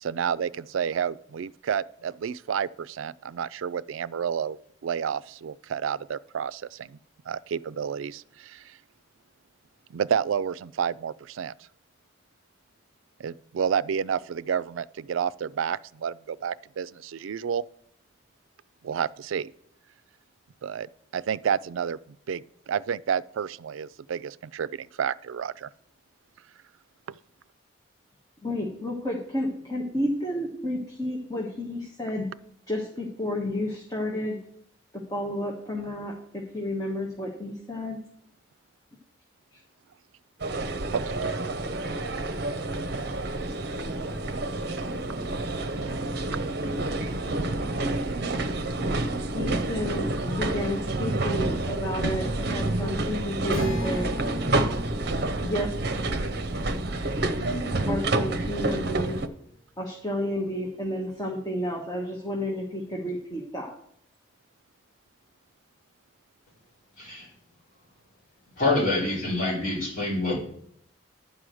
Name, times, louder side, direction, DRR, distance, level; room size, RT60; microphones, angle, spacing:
voice 1, 0.0-4.6 4.8-7.0 7.3-8.8 9.9-11.5 13.2-17.6 18.8-19.5 20.6-20.9 21.1-22.0 22.3-25.7 40.6-41.0, right 7 dB, 85° right, 0.4 m, -30 dB
voice 2, 28.4-32.3 32.7-34.4 34.9-38.0 49.3-54.1 55.4-55.7 57.9-59.2 59.8-63.7, left 1 dB, 20° left, 1.3 m, -31 dB
sound 1, 40.4-59.3, right 2 dB, 55° right, 0.7 m, -29 dB
Acoustic guitar, 53.5-59.0, left 2 dB, 80° left, 1.6 m, -40 dB
voice 3, 67.0-67.3 68.6-70.4, left 2 dB, 45° left, 4.2 m, -26 dB
11.5 x 4.8 x 7.7 m
head